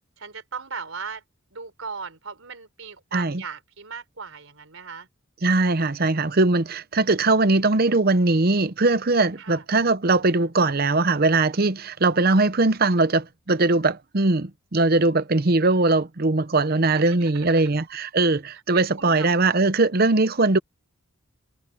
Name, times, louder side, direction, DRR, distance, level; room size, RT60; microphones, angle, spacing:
voice 1, 0.2-1.2 1.5-5.1 9.4-9.6 16.7-17.8 18.3-18.4 18.7-19.5, right 5 dB, 75° right, 4.1 m, -38 dB
voice 2, 3.1-3.4 5.4-20.6, right 3 dB, 45° right, 0.8 m, -20 dB
head